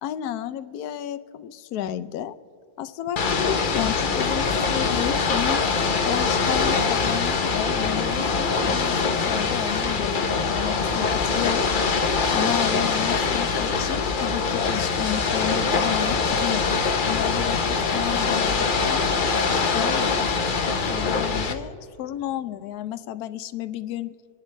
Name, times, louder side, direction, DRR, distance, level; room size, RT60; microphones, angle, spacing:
voice 1, 0.0-2.4 2.8-5.6 6.0-11.7 12.3-19.1 19.7-20.3 20.9-24.1, left 12 dB, 70° left, 12 dB, 1.0 m, -32 dB
Ocean / Boat Water vehicle, 3.2-21.5, left 4 dB, 50° left, 0.5 m, -23 dB
sound 1, 12.5-20.8, left 4 dB, 90° left, 2.0 m, -45 dB
26.5 x 11.5 x 3.3 m, 2.6 s
omnidirectional pair, 1.9 m